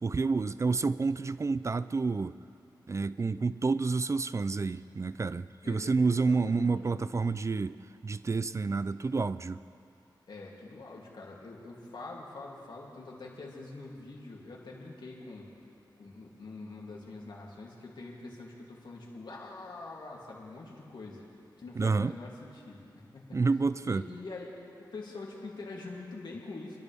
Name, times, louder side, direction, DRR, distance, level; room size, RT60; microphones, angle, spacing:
voice 1, 0.0-2.4 2.9-7.8 8.0-9.6 21.8-22.1 23.3-24.0, right 4 dB, 40° right, 0.4 m, -29 dB
voice 2, 5.6-6.7 10.3-15.5 16.0-21.2 21.6-23.4 23.8-24.5 24.9-26.8, left 3 dB, 75° left, 2.8 m, -44 dB
27.0 x 11.5 x 3.5 m
wide cardioid pair, 70°, 8 cm